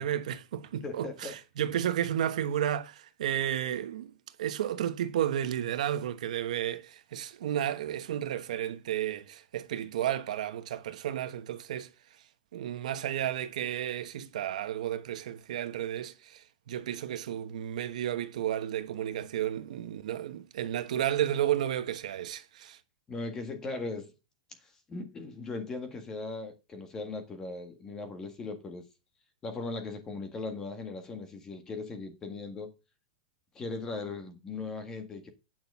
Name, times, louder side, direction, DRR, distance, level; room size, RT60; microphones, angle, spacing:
voice 1, 0.0-4.1 4.4-11.9 12.5-22.8, right 11 dB, 70° right, 1.2 m, -32 dB
voice 2, 0.8-1.4 23.1-24.1 24.6-28.8 29.4-32.7 33.6-35.3, left 3 dB, 15° left, 1.7 m, -38 dB
9.4 x 6.1 x 5.5 m
supercardioid pair, 175°, 4 cm